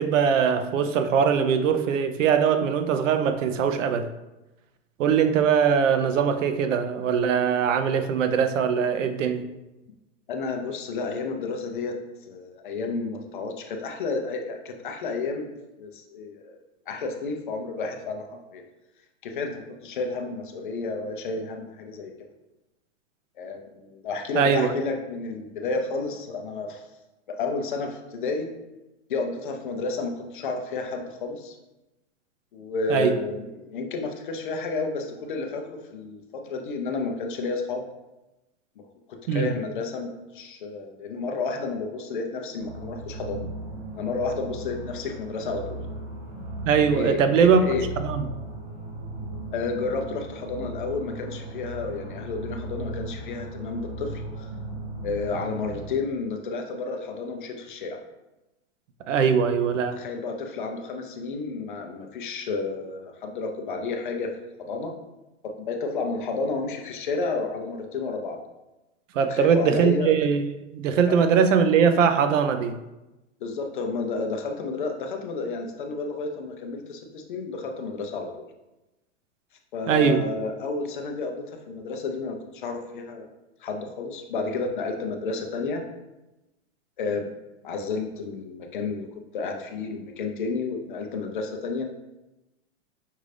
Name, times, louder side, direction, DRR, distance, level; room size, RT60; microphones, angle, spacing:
voice 1, 0.0-4.1 5.0-9.4 24.3-24.7 32.9-33.2 39.3-39.5 46.6-47.7 48.0-48.2 59.1-60.0 69.1-70.4 70.7-72.8 79.9-80.2, right 7 dB, 85° right, 8 dB, 0.6 m, -21 dB
voice 2, 10.3-11.9 12.2-15.5 15.8-16.6 16.9-18.6 19.2-22.1 23.4-26.8 27.3-28.5 29.1-31.6 32.5-37.8 39.1-43.4 43.9-45.8 46.9-47.8 49.5-54.5 55.0-58.0 59.9-64.3 64.6-64.9 65.4-68.4 69.2-70.1 71.1-71.2 73.4-78.3 79.7-83.3 83.6-85.8 87.0-87.3 87.6-89.1 89.3-91.8, left 4 dB, 45° left, 4 dB, 0.5 m, -31 dB
sound 1, 42.6-55.9, right 1 dB, 30° right, 0.4 m, -37 dB
5.5 x 2.5 x 3.2 m, 1.0 s
supercardioid pair, 175°, 37 cm